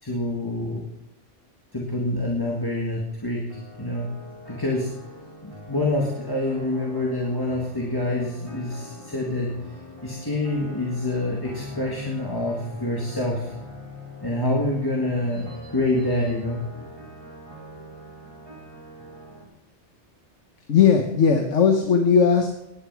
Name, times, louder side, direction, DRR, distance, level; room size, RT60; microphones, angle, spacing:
voice 1, 0.0-0.8 1.7-4.1 4.5-4.9 5.4-9.5 10.0-13.5 14.2-16.8, left 1 dB, 20° left, -3 dB, 1.8 m, -26 dB
sound 1, 3.5-19.4, left 1 dB, 25° right, 3.3 m, -43 dB
voice 2, 20.7-22.5, left 6 dB, 90° left, 4 dB, 1.5 m, -18 dB
17.0 x 10.0 x 4.7 m, 0.85 s
omnidirectional pair, 1.2 m